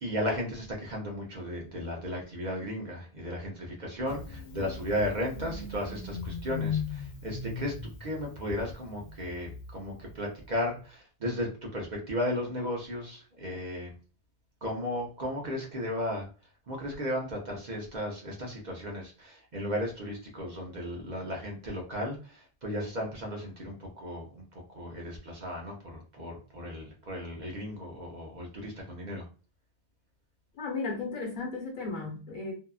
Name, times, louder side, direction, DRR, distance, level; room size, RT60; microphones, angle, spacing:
voice 1, 0.0-7.7 8.0-13.9 14.6-16.3 16.7-24.4 24.7-29.3, equal, 50° right, 0 dB, 0.7 m, -35 dB
Engine starting, 4.1-10.6, left 5 dB, 85° left, 0.9 m, -38 dB
voice 2, 30.5-32.5, left 3 dB, 50° left, -1 dB, 1.1 m, -35 dB
2.7 x 2.4 x 2.3 m, 0.36 s
omnidirectional pair, 1.1 m